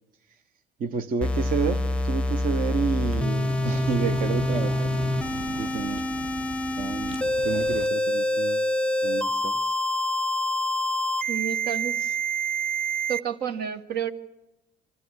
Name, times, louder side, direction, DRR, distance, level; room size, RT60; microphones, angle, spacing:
voice 1, 0.8-5.0 5.5-6.1 6.8-7.2 7.4-8.7 9.0-9.7, right 6 dB, 55° right, 6 dB, 1.2 m, -30 dB
sound 1, 1.2-13.2, left 1 dB, 5° left, 0.7 m, -26 dB
sound 2, 1.7-7.9, right 6 dB, 35° right, 0.7 m, -39 dB
voice 2, 11.3-12.2 13.1-14.1, right 8 dB, 70° right, 8 dB, 1.7 m, -30 dB
24.5 x 14.5 x 9.7 m, 0.96 s
cardioid pair, 110°, 17 cm